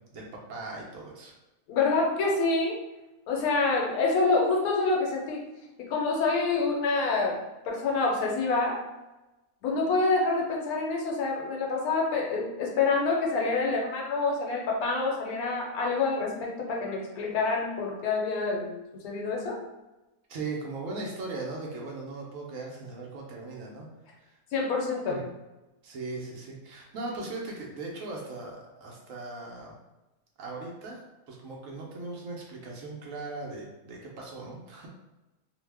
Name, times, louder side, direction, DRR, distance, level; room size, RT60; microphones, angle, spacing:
voice 1, 0.1-1.3 20.3-23.9 24.2-24.4 25.1-25.2 25.8-29.8 30.4-34.9, right 3 dB, 70° right, -1 dB, 1.0 m, -39 dB
voice 2, 1.7-2.8 3.3-5.4 5.8-7.4 7.7-8.8 9.6-19.6 24.5-25.2, left 3 dB, 85° left, 0 dB, 1.1 m, -27 dB
2.7 x 2.1 x 3.2 m, 1.0 s
omnidirectional pair, 1.5 m